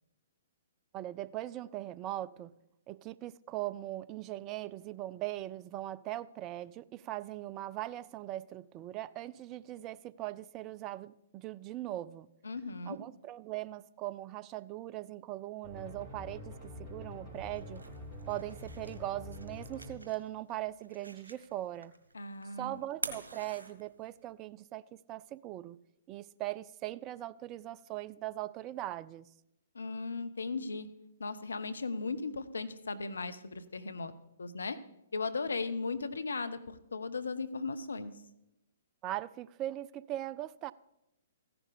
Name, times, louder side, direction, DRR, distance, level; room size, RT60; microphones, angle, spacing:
voice 1, 0.9-2.5 2.9-12.3 12.9-17.8 18.3-21.9 22.6-25.8 26.1-29.3 39.0-40.7, right 15 dB, 25° right, 0.3 m, -40 dB
voice 2, 12.4-13.0 22.1-22.8 29.7-30.9 31.2-34.1 34.4-34.8 35.1-38.1, left 4 dB, 70° left, 0.7 m, -37 dB
sound 1, 15.6-19.9, left 1 dB, 10° right, 5.2 m, -46 dB
sound 2, 17.3-24.3, right 2 dB, 75° right, 1.3 m, -48 dB
15.0 x 11.0 x 3.5 m
figure-of-eight pair, 120°, 0 cm